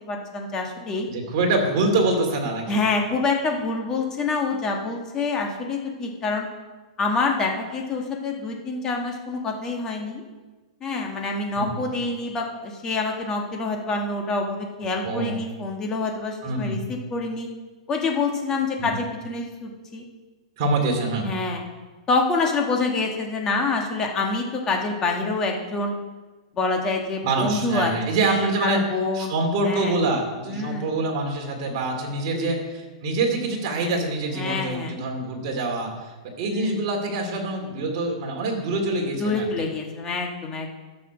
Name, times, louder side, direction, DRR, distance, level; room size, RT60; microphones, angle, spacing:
voice 1, 0.0-1.1 2.7-6.5 7.0-10.2 10.8-17.5 17.9-20.0 21.2-21.6 22.1-25.9 26.5-29.3 29.6-29.9 30.5-30.9 32.3-32.5 34.3-34.9 36.5-36.8 39.2-40.8, left 3 dB, 15° left, 1 dB, 1.4 m, -26 dB
voice 2, 1.1-2.8 11.5-11.7 15.0-15.4 16.4-16.8 18.8-18.9 20.6-21.3 27.2-28.8 29.1-36.1 36.4-39.5, right 2 dB, 40° right, 1 dB, 2.6 m, -25 dB
12.5 x 6.9 x 6.1 m, 1.3 s
supercardioid pair, 170°, 4 cm